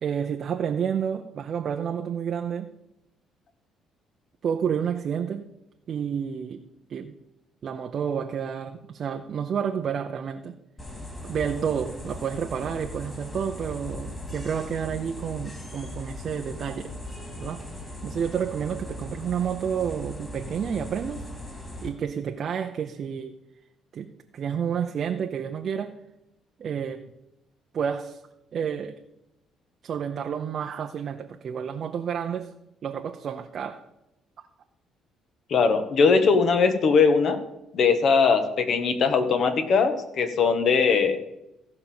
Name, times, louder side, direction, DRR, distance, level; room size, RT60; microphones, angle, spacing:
voice 1, 0.0-2.7 4.4-5.5 5.9-6.6 6.9-7.1 7.6-10.5 11.2-16.9 17.4-21.3 21.8-23.3 23.9-26.0 26.6-27.0 27.7-28.2 28.5-29.0 29.8-32.5 32.8-33.8, right 7 dB, 45° right, 4 dB, 0.7 m, -30 dB
sound 1, 10.8-21.9, left 1 dB, 15° left, 2.8 m, -39 dB
voice 2, 35.5-37.4 37.7-41.2, left 5 dB, 50° left, 8 dB, 1.5 m, -20 dB
15.5 x 5.4 x 7.1 m, 0.90 s
cardioid pair, 130°, 0 cm